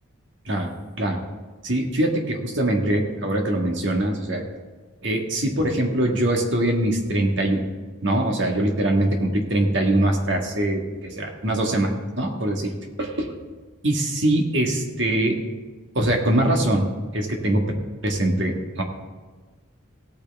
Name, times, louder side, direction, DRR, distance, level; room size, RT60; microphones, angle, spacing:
voice 1, 1.6-4.4 5.0-7.6 8.0-13.3 13.8-15.4 16.0-16.9 17.1-17.6 18.0-18.8, right 1 dB, 60° right, 2 dB, 1.7 m, -23 dB
16.5 x 8.7 x 3.5 m, 1.4 s
head